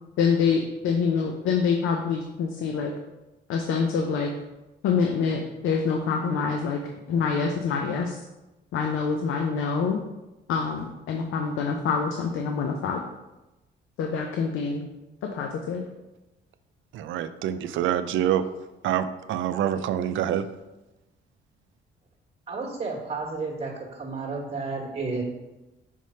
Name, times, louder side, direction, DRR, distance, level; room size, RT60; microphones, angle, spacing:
voice 1, 0.2-2.9 3.5-4.3 4.8-6.8 7.1-8.2 8.7-10.0 10.5-13.0 14.0-14.9 15.2-15.8, left 5 dB, 80° left, 3 dB, 0.6 m, -26 dB
voice 2, 16.9-18.4 18.8-20.4, right 10 dB, 80° right, 12 dB, 0.4 m, -26 dB
voice 3, 22.5-25.2, right 3 dB, 30° right, -1 dB, 1.4 m, -32 dB
5.4 x 3.2 x 5.4 m, 1.0 s
cardioid pair, 90°, 20 cm